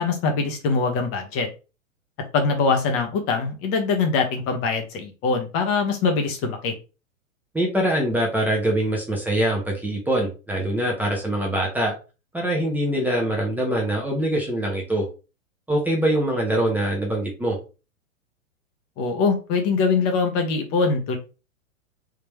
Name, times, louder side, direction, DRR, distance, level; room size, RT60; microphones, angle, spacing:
voice 1, 0.0-1.5 2.3-6.7 19.0-21.2, left 4 dB, 35° left, 4 dB, 1.1 m, -23 dB
voice 2, 7.5-11.9 12.3-15.0 15.7-17.6, right 1 dB, 5° right, -1 dB, 1.0 m, -23 dB
3.7 x 3.1 x 3.1 m, 0.32 s
hypercardioid pair, 110°, 41 cm